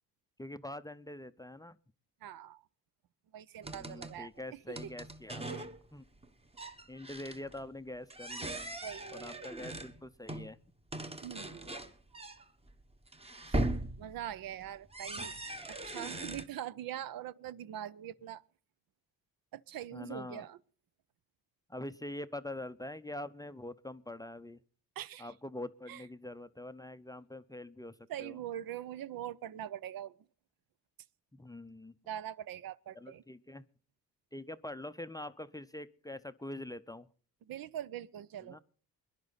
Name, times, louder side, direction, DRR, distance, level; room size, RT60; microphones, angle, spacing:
voice 1, 0.4-1.8 3.7-5.6 5.9-6.0 6.9-8.7 9.1-10.6 19.9-20.5 21.7-24.6 25.2-28.4 31.3-31.9 32.9-33.6 34.3-37.1 38.5-38.6, left 1 dB, 10° left, 0.5 m, -44 dB
voice 2, 2.2-2.6 3.3-4.9 5.5-5.7 8.8-9.5 11.2-11.7 13.5-13.6 14.0-15.3 15.7-18.4 19.5-20.6 25.0-25.3 25.9-26.0 28.1-30.2 32.1-33.2 37.5-38.6, right 11 dB, 60° right, 0.6 m, -43 dB
sound 1, 3.6-4.2 4.8-5.8 6.1-6.3 6.5-7.6 8.1-10.5 10.9-16.4, right 1 dB, 15° right, 1.2 m, -39 dB
21.0 x 11.0 x 4.0 m
supercardioid pair, 55°, 40 cm